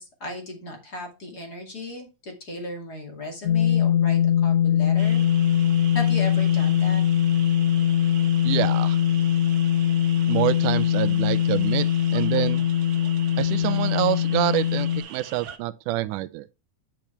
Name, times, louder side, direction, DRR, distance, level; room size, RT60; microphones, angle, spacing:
voice 1, 0.0-5.2 5.9-7.0, left 1 dB, 30° left, 2.7 m, -36 dB
sound 1, 3.4-15.0, left 9 dB, 70° left, 2.3 m, -21 dB
sound 2, 5.0-15.6, right 8 dB, 60° right, 1.4 m, -43 dB
voice 2, 8.4-9.0 10.2-11.9 12.1-12.6 13.4-16.5, right 15 dB, 85° right, 2.2 m, -26 dB
10.5 x 6.0 x 3.2 m
omnidirectional pair, 3.5 m